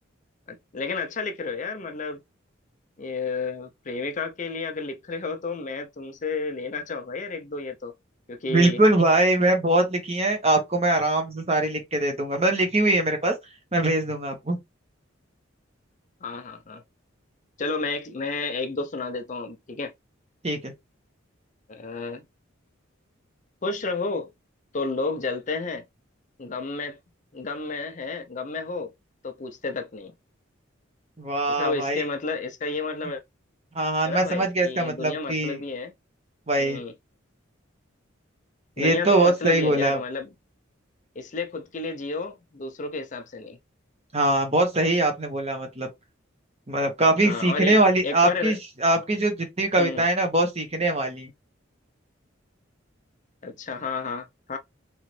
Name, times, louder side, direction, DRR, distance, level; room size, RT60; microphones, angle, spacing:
voice 1, 0.5-2.2 3.0-7.9 8.3-8.8 16.2-16.8 17.6-19.9 21.7-22.2 23.6-24.3 24.7-25.8 26.4-27.0 27.3-28.9 29.2-30.1 31.5-33.2 34.0-35.9 36.6-36.9 38.8-40.3 41.2-43.6 47.2-48.6 49.8-50.1 53.4-54.6, left 3 dB, 40° left, 0.5 m, -31 dB
voice 2, 8.5-13.3 13.7-14.6 20.4-20.7 31.2-32.0 33.7-35.6 36.5-36.8 38.8-40.0 44.1-45.9 46.7-51.3, right 2 dB, 30° right, 1.1 m, -22 dB
3.7 x 3.1 x 3.2 m
head